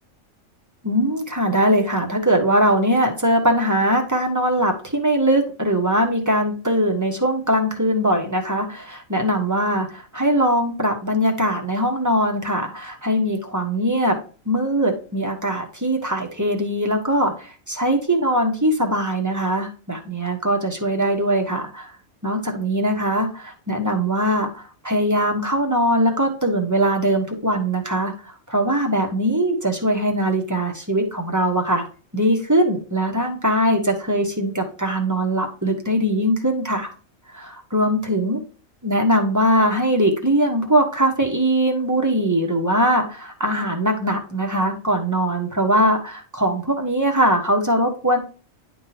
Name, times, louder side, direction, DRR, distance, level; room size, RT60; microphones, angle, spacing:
voice 1, 0.8-14.2 14.4-21.9 22.2-31.8 32.1-36.9 37.3-38.4 38.8-48.2, equal, 15° right, 2 dB, 1.3 m, -21 dB
10.5 x 3.8 x 2.9 m, 0.37 s
omnidirectional pair, 1.4 m